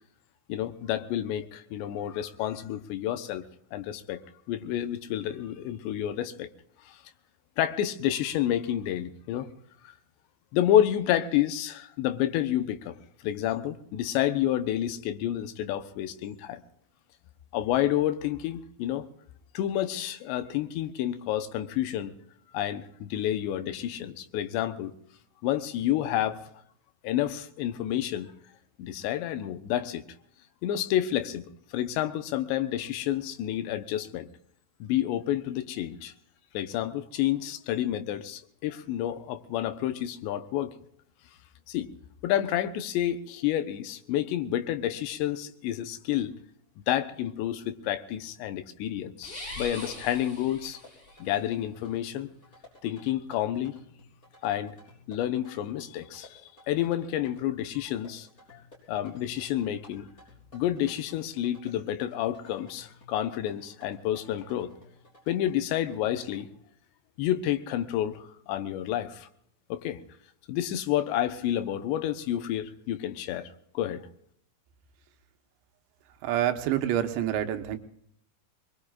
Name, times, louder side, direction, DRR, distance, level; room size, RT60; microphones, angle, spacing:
voice 1, 0.5-3.4 3.7-4.2 4.5-6.5 6.9-7.0 7.6-9.5 9.8-9.9 10.5-13.0 13.2-16.6 17.5-19.1 19.5-22.2 22.5-24.9 25.4-26.4 27.0-28.3 28.8-30.0 30.6-31.4 31.7-34.3 34.8-36.1 36.5-40.7 41.7-41.9 42.2-46.3 46.9-50.8 51.2-52.3 52.8-53.8 54.4-54.8 55.1-56.4 56.7-58.6 58.9-60.1 60.5-64.7 65.3-66.5 67.2-69.3 69.7-70.0 70.5-73.5 73.7-74.0, left 12 dB, 85° left, 9 dB, 3.1 m, -29 dB
sound 1, 49.2-51.2, left 1 dB, 35° left, 8.9 m, -41 dB
sound 2, 49.5-66.4, left 2 dB, 20° left, 5.7 m, -55 dB
voice 2, 76.2-77.8, right 11 dB, 85° right, 7 dB, 3.3 m, -27 dB
25.5 x 21.5 x 2.4 m, 0.67 s
omnidirectional pair, 5.0 m